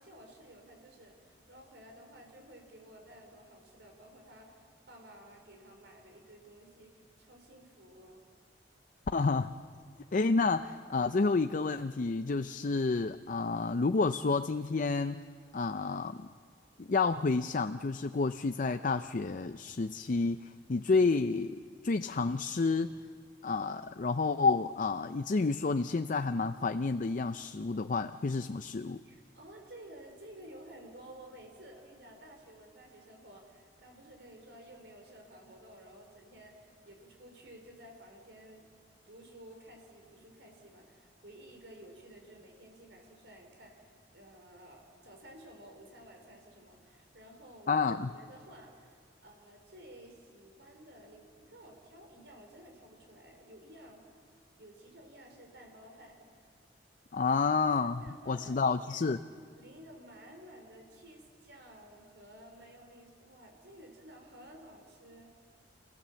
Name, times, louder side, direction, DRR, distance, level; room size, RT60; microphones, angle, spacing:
voice 1, 0.0-8.2 29.0-38.6 39.1-47.7 48.1-54.0 54.6-56.2 58.0-59.0 59.6-65.3, right 1 dB, 80° right, 2 dB, 4.7 m, -53 dB
voice 2, 9.1-9.5 10.1-15.2 15.5-16.3 16.8-21.6 21.8-22.9 23.4-29.0 47.7-48.1 57.1-59.2, left 4 dB, 45° left, 10 dB, 0.5 m, -30 dB
28.0 x 17.0 x 7.6 m, 2.1 s
head